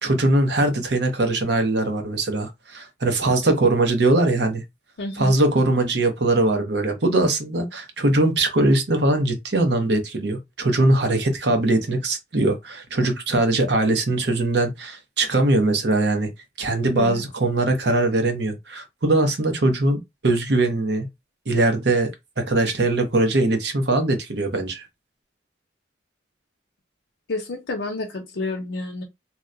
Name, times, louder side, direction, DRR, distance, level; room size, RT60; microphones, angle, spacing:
voice 1, 0.0-4.6 5.2-16.3 16.6-21.1 21.5-22.1 22.4-24.9, right 2 dB, 60° right, 0.8 m, -21 dB
voice 2, 5.0-5.3 16.9-17.2 27.3-29.0, left 2 dB, 70° left, 0.6 m, -29 dB
2.9 x 2.1 x 3.7 m
head